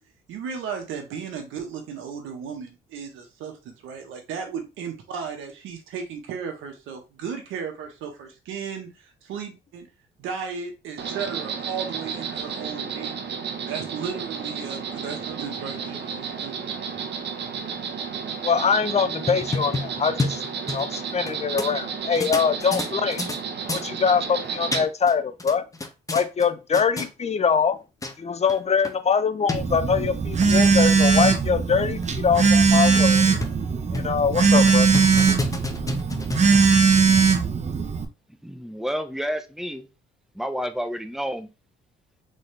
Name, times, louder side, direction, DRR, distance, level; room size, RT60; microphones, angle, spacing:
voice 1, 0.3-9.9 10.2-13.1 13.6-16.7, right 6 dB, 90° right, 1.4 m, -35 dB
Insect, 11.0-24.9, right 6 dB, 60° right, 1.0 m, -32 dB
voice 2, 18.4-20.4 20.7-23.2 23.7-25.6 26.1-27.8 28.2-33.3 33.9-34.9, left 6 dB, 35° left, 0.7 m, -23 dB
sound 1, 19.1-21.3 21.6-21.7 22.2-23.4 23.7-23.9 24.4-25.1 25.4-26.5 26.7-27.1 27.7-27.8 28.0-28.1 28.5-28.6 28.8-28.9 29.5-29.6 30.2-30.5 31.0-31.1 31.5-31.6 32.0-32.1 32.4-32.5 33.0-33.6 33.9-34.2 34.7-36.8, left 2 dB, 15° left, 0.9 m, -30 dB
Telephone, 29.5-38.1, right 5 dB, 35° right, 0.8 m, -19 dB
voice 3, 38.4-39.9 40.3-41.5, equal, ahead, 0.7 m, -30 dB
4.1 x 3.8 x 3.3 m
cardioid pair, 90°, 20 cm